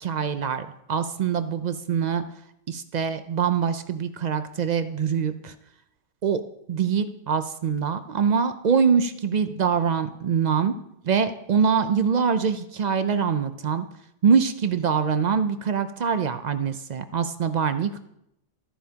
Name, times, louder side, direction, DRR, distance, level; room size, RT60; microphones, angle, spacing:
voice 1, 0.0-2.2 2.7-5.5 6.2-6.4 6.7-10.7 11.0-13.8 14.2-18.0, right 6 dB, 55° right, 10 dB, 0.5 m, -24 dB
13.5 x 10.0 x 2.8 m, 0.79 s
omnidirectional pair, 1.3 m